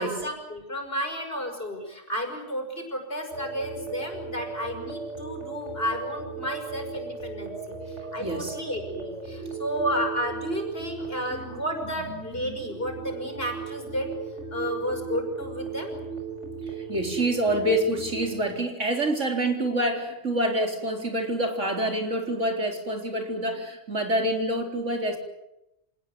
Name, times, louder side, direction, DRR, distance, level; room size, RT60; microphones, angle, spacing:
voice 1, 0.0-7.8 8.1-14.1 14.5-16.0, equal, 50° left, 4 dB, 6.0 m, -32 dB
sound 1, 3.3-18.5, right 5 dB, 75° right, 6.9 m, -37 dB
voice 2, 8.2-8.6 16.9-25.2, right 1 dB, 90° right, 3 dB, 4.5 m, -26 dB
27.0 x 18.5 x 9.5 m, 0.89 s
omnidirectional pair, 1.2 m